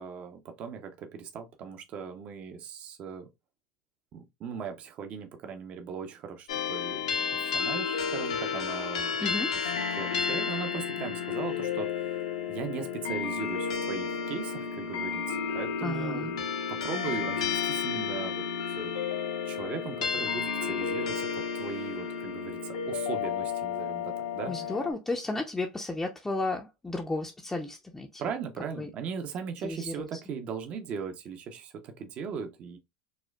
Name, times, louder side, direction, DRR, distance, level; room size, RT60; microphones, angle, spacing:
voice 1, 0.0-3.3 4.1-7.1 7.3-9.2 9.6-12.2 12.5-16.4 16.7-18.9 19.4-24.8 28.2-32.8, right 6 dB, 40° right, 0.6 m, -38 dB
sound 1, 6.5-24.9, left 6 dB, 85° left, 0.8 m, -32 dB
voice 2, 9.2-9.5 15.8-16.3 24.5-28.2 28.8-28.9 29.6-30.1, left 2 dB, 10° left, 0.5 m, -33 dB
4.2 x 2.2 x 2.2 m
hypercardioid pair, 100°, 3 cm